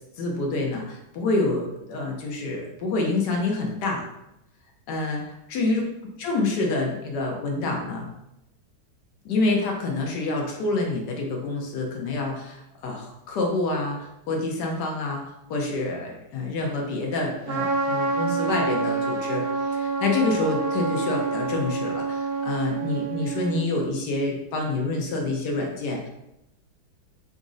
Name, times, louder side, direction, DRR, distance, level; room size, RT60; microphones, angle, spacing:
voice 1, 0.2-4.0 4.9-5.9 6.2-8.1 9.2-26.1, left 2 dB, 65° left, 0 dB, 1.2 m, -27 dB
Trumpet, 17.5-23.7, right 4 dB, 80° right, 0.8 m, -27 dB
4.0 x 2.5 x 3.8 m, 0.86 s
omnidirectional pair, 2.2 m